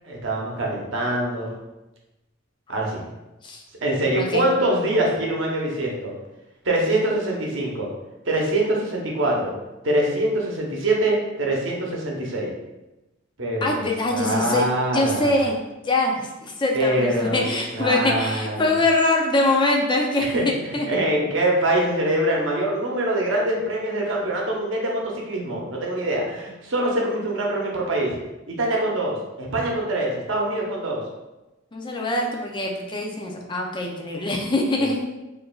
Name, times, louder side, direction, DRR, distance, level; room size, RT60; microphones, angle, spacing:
voice 1, 0.0-1.5 2.7-3.1 3.8-6.1 6.6-7.9 8.3-9.5 9.8-12.5 13.4-13.8 14.1-15.4 16.7-17.5 17.7-18.7 20.2-20.4 20.8-28.2 28.5-31.0 34.8-34.9, right 1 dB, 70° right, -2 dB, 0.8 m, -24 dB
voice 2, 4.2-4.5 13.6-14.6 14.9-15.5 15.8-20.9 31.7-35.0, left 2 dB, 25° left, 0 dB, 0.5 m, -23 dB
4.7 x 2.6 x 2.3 m, 1.0 s
head